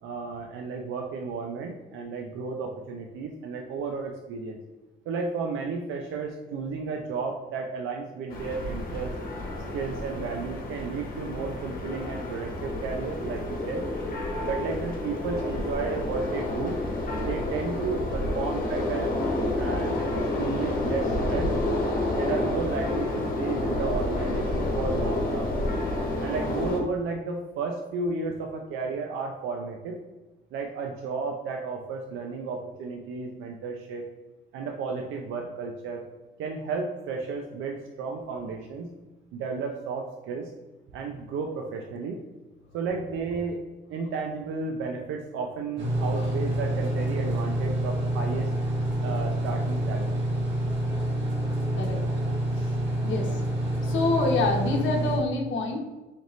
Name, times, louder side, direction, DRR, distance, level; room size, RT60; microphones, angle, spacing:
voice 1, 0.0-4.6 5.1-9.1 9.7-13.8 14.4-16.8 17.2-19.2 19.6-21.5 22.2-25.5 26.2-30.0 30.5-34.0 34.5-36.1 36.4-38.9 39.3-40.5 40.9-42.2 42.7-43.6 43.9-48.5 49.0-50.2, right 4 dB, 90° right, 2 dB, 0.5 m, -33 dB
sound 1, 8.3-26.8, left 1 dB, 45° left, 1.1 m, -29 dB
sound 2, 45.8-55.2, right 1 dB, 65° right, 1.3 m, -27 dB
voice 2, 53.8-55.8, left 3 dB, 75° left, 1 dB, 0.9 m, -26 dB
3.9 x 3.4 x 3.0 m, 1.1 s
cardioid pair, 90°, 20 cm